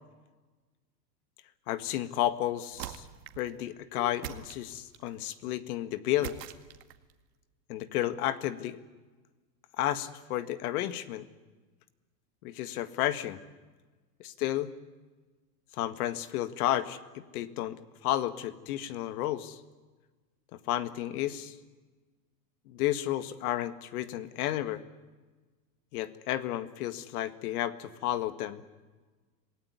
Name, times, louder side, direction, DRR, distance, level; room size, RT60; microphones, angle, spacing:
voice 1, 1.7-3.1 3.4-6.3 7.7-8.8 9.8-11.2 12.4-13.4 14.2-14.7 15.8-19.6 20.7-21.5 22.7-24.8 25.9-28.6, left 13 dB, 60° left, 12 dB, 1.8 m, -32 dB
sound 1, 2.7-3.5 4.2-5.1 6.2-7.1, right 11 dB, 80° right, 2.1 m, -42 dB
27.0 x 18.0 x 9.6 m, 1.3 s
supercardioid pair, 140°, 49 cm